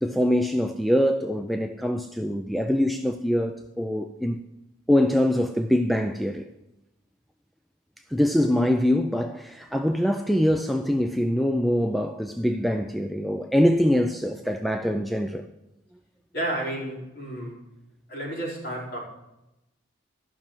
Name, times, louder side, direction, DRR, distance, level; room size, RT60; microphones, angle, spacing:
voice 1, 0.0-4.4 4.9-6.5 8.1-15.5, equal, ahead, 0.4 m, -24 dB
voice 2, 16.3-17.6 18.1-19.0, right 1 dB, 50° left, 4.6 m, -31 dB
13.5 x 6.1 x 7.2 m
head